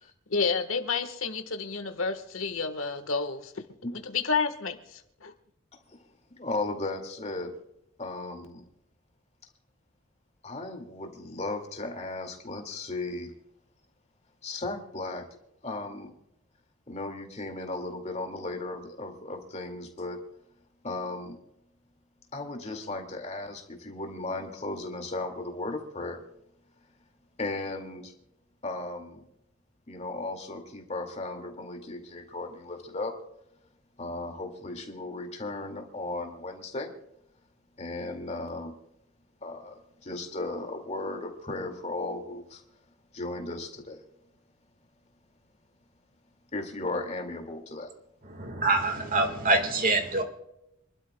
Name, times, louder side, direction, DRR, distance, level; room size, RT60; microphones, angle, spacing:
voice 1, 0.3-3.5 4.0-4.8 5.2-5.3, left 5 dB, 90° left, 1.4 m, -29 dB
voice 2, 6.3-7.5 8.0-8.7 10.4-13.3 14.4-15.2 15.6-16.1 16.9-20.2 20.8-21.4 22.3-26.3 27.4-28.1 28.6-29.3 29.9-33.1 34.0-36.9 37.8-38.7 39.4-42.6 43.1-44.0 46.5-47.9, left 2 dB, 35° left, 2.3 m, -36 dB
voice 3, 48.3-50.2, right 2 dB, 45° right, 1.8 m, -25 dB
27.5 x 12.0 x 2.3 m
head